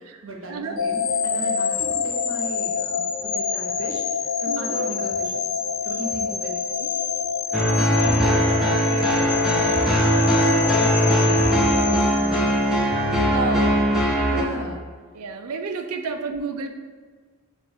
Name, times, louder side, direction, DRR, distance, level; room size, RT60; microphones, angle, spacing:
voice 1, 0.0-4.0 4.4-5.5 5.8-6.5 7.7-8.4 9.8-12.6 14.2-14.8, right 1 dB, 60° right, 0 dB, 0.8 m, -35 dB
sound 1, 0.8-12.9, left 6 dB, 45° left, 0.4 m, -27 dB
voice 2, 4.5-4.8 6.3-6.4 6.8-6.9 8.9-9.3 13.3-13.9 15.1-16.7, right 4 dB, 85° right, 6 dB, 0.4 m, -30 dB
sound 2, 7.5-14.4, equal, ahead, 0.6 m, -20 dB
6.6 x 2.4 x 2.8 m, 1.5 s
head